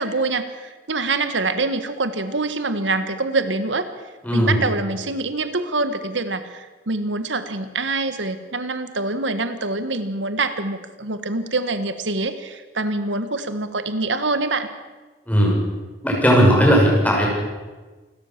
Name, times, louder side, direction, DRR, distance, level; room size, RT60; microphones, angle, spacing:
voice 1, 0.0-3.8 4.3-14.7, right 3 dB, 85° right, 10 dB, 1.5 m, -25 dB
voice 2, 4.2-4.6 15.3-15.6 16.0-17.3, equal, 10° left, -2 dB, 6.4 m, -16 dB
27.5 x 13.0 x 7.4 m, 1.3 s
head